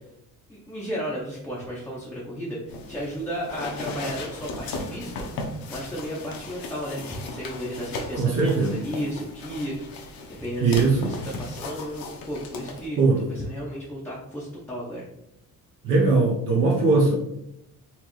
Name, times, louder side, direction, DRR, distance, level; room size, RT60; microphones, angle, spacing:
voice 1, 0.5-10.1 10.4-15.1, equal, 5° left, -6 dB, 0.6 m, -34 dB
sound 1, 2.7-12.9, left 2 dB, 85° left, 0.9 m, -36 dB
voice 2, 8.1-8.8 10.6-11.1 13.0-13.2 15.8-17.1, right 3 dB, 65° right, -4 dB, 0.9 m, -20 dB
4.3 x 3.0 x 3.0 m, 0.81 s
cardioid pair, 165°, 35 cm